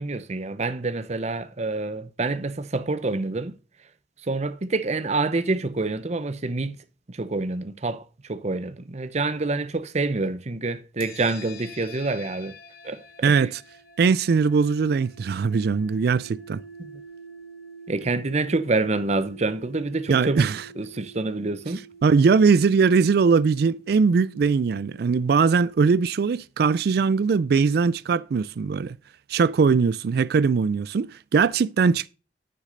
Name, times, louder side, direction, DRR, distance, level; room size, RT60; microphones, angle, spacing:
voice 1, 0.0-3.5 4.2-6.8 7.1-12.5 12.8-13.0 13.4-13.5 16.8-17.0 17.9-20.5 20.8-21.8, right 3 dB, 40° right, 0.7 m, -27 dB
sound 1, 11.0-26.0, right 1 dB, 60° left, 1.2 m, -47 dB
voice 2, 13.2-13.6 14.0-16.6 20.1-20.6 22.0-29.0 29.3-32.1, right 5 dB, 60° right, 0.4 m, -20 dB
9.4 x 6.6 x 3.8 m
head